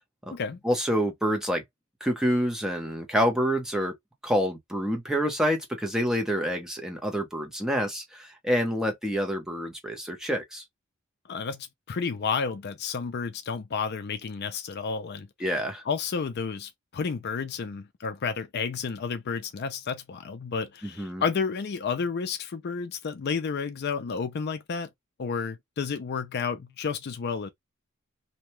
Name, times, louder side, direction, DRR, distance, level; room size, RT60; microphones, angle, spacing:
voice 1, 0.6-1.6 2.0-4.0 4.2-10.6 15.4-15.8 21.0-21.2, equal, 5° right, 0.8 m, -27 dB
voice 2, 11.3-15.3 15.9-24.9 25.2-27.5, left 5 dB, 50° left, 0.4 m, -31 dB
2.8 x 2.3 x 3.0 m
head